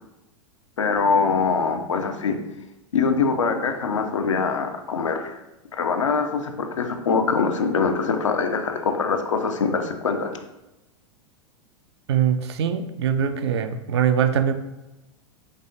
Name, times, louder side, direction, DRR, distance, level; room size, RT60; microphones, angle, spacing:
voice 1, 0.8-2.4 2.9-5.4 5.7-10.3, left 5 dB, 70° left, 6 dB, 0.5 m, -23 dB
voice 2, 12.1-14.5, right 8 dB, 55° right, 9 dB, 0.4 m, -22 dB
5.3 x 3.4 x 2.5 m, 0.97 s
figure-of-eight pair, 95°, 17 cm